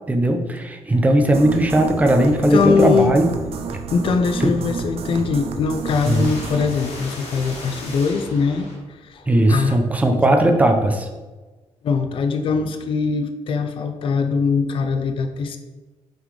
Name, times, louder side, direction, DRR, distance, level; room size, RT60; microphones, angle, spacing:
voice 1, 0.1-3.3 4.4-4.5 6.1-6.2 9.3-11.1, right 1 dB, 15° right, 5 dB, 0.8 m, -17 dB
sound 1, 1.3-6.8, right 5 dB, 65° right, 0.7 m, -30 dB
voice 2, 2.5-3.2 3.9-9.7 10.1-10.2 11.8-15.6, left 5 dB, 55° left, 7 dB, 0.6 m, -22 dB
sound 2, 5.8-9.2, left 2 dB, 85° left, 1.8 m, -36 dB
8.1 x 4.0 x 4.9 m, 1.2 s
cardioid pair, 155°, 11 cm